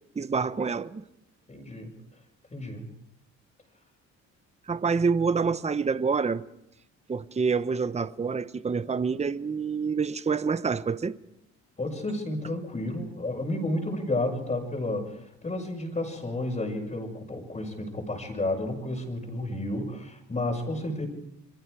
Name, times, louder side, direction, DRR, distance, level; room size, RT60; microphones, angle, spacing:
voice 1, 0.2-1.0 4.7-6.4 7.1-11.1, right 5 dB, 20° right, 0.9 m, -27 dB
voice 2, 1.5-1.9 2.5-2.8 11.8-21.0, left 1 dB, 25° left, 6.0 m, -31 dB
29.0 x 22.5 x 4.9 m
cardioid pair, 90°, 30 cm